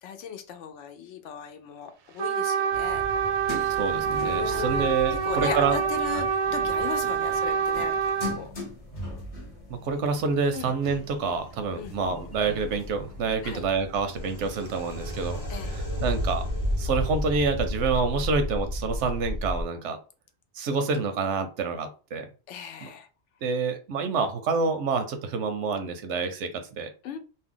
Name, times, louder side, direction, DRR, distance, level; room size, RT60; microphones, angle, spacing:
voice 1, 0.0-3.0 4.3-7.9 8.4-8.5 10.5-10.7 11.7-12.0 13.4-13.6 15.5-15.8 22.5-23.1 27.0-27.2, left 7 dB, 85° left, 6 dB, 0.9 m, -37 dB
Trumpet, 2.2-8.4, right 7 dB, 60° right, 0.5 m, -26 dB
sound 1, 2.7-17.5, left 1 dB, 45° left, 1.0 m, -41 dB
voice 2, 3.8-5.8 6.1-6.2 8.3-8.5 9.7-15.4 15.7-16.4 16.8-20.0 20.5-22.3 22.8-22.9 23.4-26.9, right 4 dB, 85° right, 8 dB, 0.9 m, -27 dB
sound 2, 14.1-19.6, equal, 20° left, 0.6 m, -31 dB
2.7 x 2.1 x 3.6 m, 0.34 s
omnidirectional pair, 1.2 m